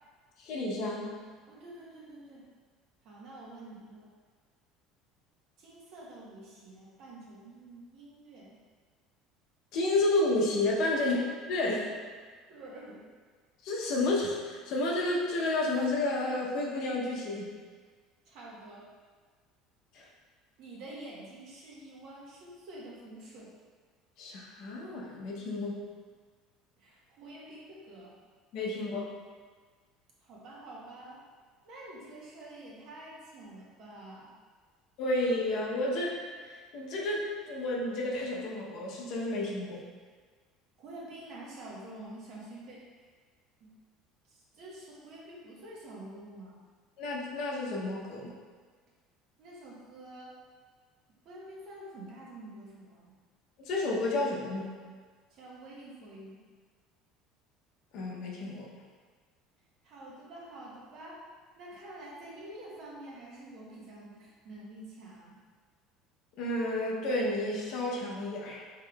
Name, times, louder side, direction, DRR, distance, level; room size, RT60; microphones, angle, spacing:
voice 1, 0.4-1.1 9.7-11.2 11.5-11.9 13.6-17.5 19.9-20.0 24.2-25.8 28.5-29.0 35.0-36.2 36.4-39.8 47.0-48.4 53.6-54.7 57.9-58.7 66.4-68.6, left 2 dB, 50° left, -2 dB, 0.7 m, -31 dB
voice 2, 1.5-2.4 3.0-4.1 5.6-8.6 11.0-11.3 12.5-13.1 18.3-18.9 20.6-23.5 26.8-28.1 30.2-31.2 31.6-34.3 40.8-43.1 43.6-43.7 44.3-46.6 49.4-50.4 51.2-53.1 55.3-56.4 59.8-61.2 61.6-65.4, right 1 dB, 50° right, -4 dB, 1.1 m, -47 dB
5.4 x 3.7 x 2.3 m, 1.5 s
cardioid pair, 165°, 0 cm